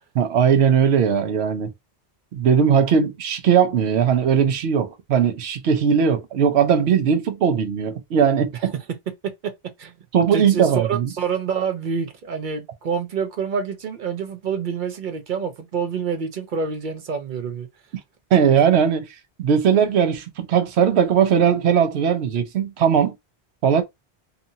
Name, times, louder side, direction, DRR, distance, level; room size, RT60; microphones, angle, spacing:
voice 1, 0.1-1.7 2.3-8.7 10.1-11.1 18.3-19.1 19.4-23.1 23.6-23.8, right 7 dB, 85° right, 0.9 m, -19 dB
voice 2, 10.3-17.7, right 6 dB, 55° right, 0.6 m, -27 dB
2.7 x 2.5 x 2.6 m
omnidirectional pair, 1.1 m